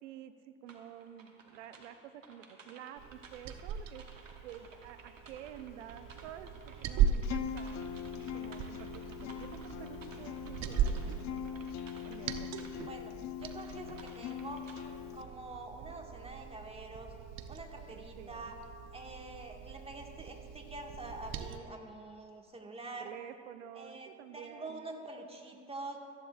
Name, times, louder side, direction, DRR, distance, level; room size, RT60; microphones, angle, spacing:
voice 1, 0.0-4.0 4.4-11.7 12.0-12.7 17.9-18.6 23.0-24.8, right 10 dB, 70° right, 10 dB, 0.9 m, -50 dB
sound 1, 0.7-12.8 13.3-15.0, right 4 dB, 90° right, 1.2 m, -56 dB
Liquid, 3.0-21.6, right 8 dB, 45° right, 0.7 m, -39 dB
Acoustic guitar, 7.2-15.2, left 9 dB, 45° left, 0.7 m, -42 dB
voice 2, 13.4-14.6 15.1-17.1 17.5-18.6 18.9-23.1 23.7-26.0, right 2 dB, 15° right, 2 dB, 1.7 m, -46 dB
17.5 x 13.5 x 2.4 m, 2.3 s
hypercardioid pair, 70°, 38 cm